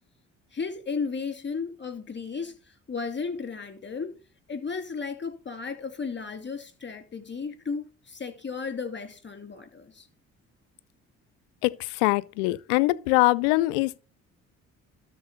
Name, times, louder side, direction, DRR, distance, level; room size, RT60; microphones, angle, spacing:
voice 1, 0.5-4.2 4.5-10.1, left 5 dB, 30° left, 2.7 m, -34 dB
voice 2, 11.6-14.0, left 21 dB, 85° left, 0.5 m, -23 dB
12.5 x 4.4 x 6.7 m
hypercardioid pair, 50°, 36 cm